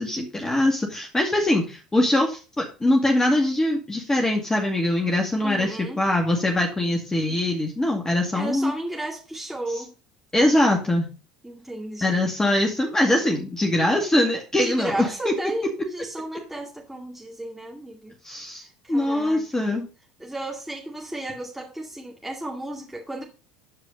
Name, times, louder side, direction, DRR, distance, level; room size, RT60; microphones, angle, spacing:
voice 1, 0.0-8.7 9.7-9.8 10.3-11.1 12.0-15.3 18.2-19.9, left 1 dB, 15° left, 2.3 m, -22 dB
voice 2, 5.4-6.0 8.3-9.9 11.4-12.3 14.5-18.1 18.8-19.8 20.2-23.2, right 1 dB, 5° right, 2.3 m, -33 dB
13.5 x 4.8 x 5.3 m
hypercardioid pair, 70°, 4 cm